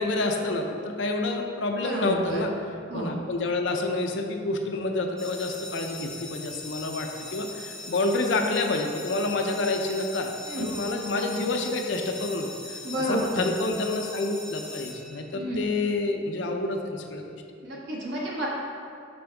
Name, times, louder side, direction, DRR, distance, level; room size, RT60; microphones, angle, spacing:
voice 1, 0.0-2.5 2.9-10.3 10.6-17.4, left 2 dB, 65° left, 3 dB, 0.5 m, -28 dB
voice 2, 1.8-2.4 2.9-3.2 10.5-10.6 12.8-13.4 15.3-15.6 17.6-18.5, right 1 dB, 55° right, -5 dB, 1.3 m, -30 dB
sound 1, 5.2-15.6, left 3 dB, 5° left, 0.6 m, -40 dB
6.2 x 5.2 x 3.4 m, 2.5 s
head